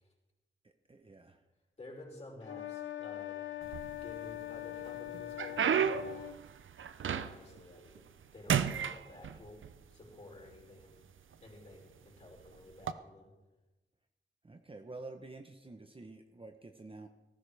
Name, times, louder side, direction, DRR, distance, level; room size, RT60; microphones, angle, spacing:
voice 1, 0.6-1.4 14.4-17.1, right 2 dB, 25° right, 5 dB, 0.9 m, -49 dB
voice 2, 1.8-6.2 7.1-9.6 9.9-11.0 11.4-13.3, left 1 dB, 35° left, -3 dB, 5.2 m, -52 dB
sound 1, 2.4-6.4, left 14 dB, 75° left, 0.7 m, -42 dB
sound 2, 3.6-4.4 4.9-7.6 8.0-8.2 8.5-9.7 10.5-10.6 11.3-11.5 12.7-12.9, right 8 dB, 85° right, 0.6 m, -32 dB
17.5 x 14.5 x 3.5 m, 1.1 s
wide cardioid pair, 100°, 20 cm